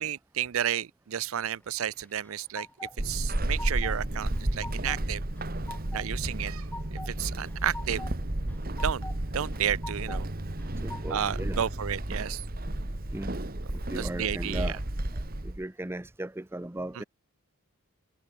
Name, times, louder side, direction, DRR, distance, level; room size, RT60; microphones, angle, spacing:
voice 1, 0.0-2.7 3.0-5.2 5.9-8.0 8.8-10.3 11.1-12.4 13.9-14.8 16.9-17.0, right 9 dB, 70° right, 0.5 m, -32 dB
sound 1, 1.9-2.9 3.3-4.0 4.3-5.0 5.4-6.1 6.4-7.1 7.5-8.1 8.5-9.2 9.5-10.2 10.6-11.4, left 2 dB, 10° left, 1.6 m, -43 dB
Walk footsteps / Squeak, 3.0-15.6, right 1 dB, 45° right, 1.6 m, -32 dB
voice 2, 10.8-11.6 13.1-13.3 13.9-14.8 15.1-17.0, right 1 dB, 10° right, 0.5 m, -37 dB
head